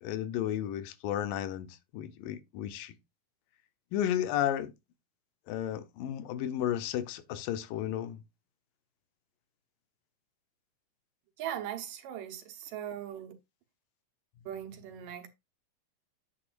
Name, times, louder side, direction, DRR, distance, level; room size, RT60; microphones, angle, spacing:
voice 1, 0.0-2.9 3.9-4.7 5.5-8.2, left 11 dB, 85° left, 2.6 m, -33 dB
voice 2, 11.4-13.3 14.5-15.3, right 10 dB, 80° right, 2.9 m, -39 dB
9.5 x 8.7 x 2.6 m
omnidirectional pair, 3.9 m